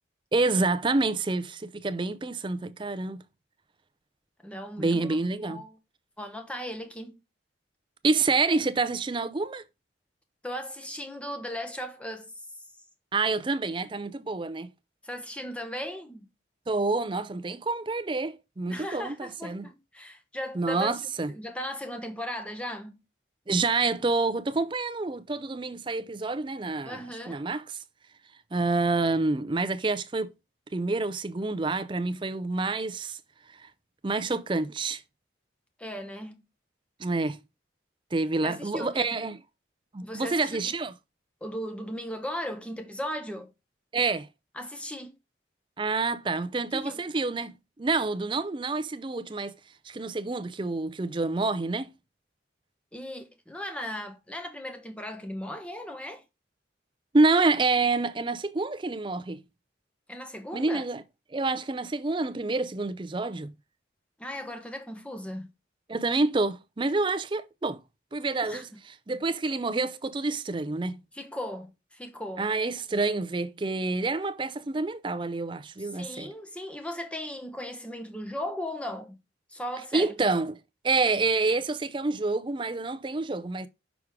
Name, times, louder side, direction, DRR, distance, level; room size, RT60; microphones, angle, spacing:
voice 1, 0.3-3.2 4.8-5.6 8.0-9.6 13.1-14.7 16.7-19.7 20.5-21.3 23.5-27.0 27.3-27.6 28.5-30.3 30.7-33.2 33.5-33.7 34.0-35.0 37.0-37.4 38.1-39.3 39.9-40.9 43.9-44.3 45.8-49.5 49.8-51.9 57.1-59.4 60.5-61.0 61.3-63.5 65.9-67.8 68.1-71.0 72.4-76.3 79.9-80.6 80.8-83.7, right 3 dB, 25° right, 0.4 m, -28 dB
voice 2, 4.4-5.2 5.4-5.8 6.2-7.2 10.4-12.3 15.0-16.3 18.7-21.0 21.3-23.0 26.8-27.4 35.8-36.4 38.4-39.1 40.0-40.7 41.4-43.5 44.5-45.1 46.7-47.0 52.9-56.2 60.1-60.8 64.2-65.5 68.4-68.8 71.1-72.5 75.8-79.2 79.5-80.1, left 1 dB, 5° left, 0.9 m, -37 dB
6.0 x 4.8 x 3.6 m
head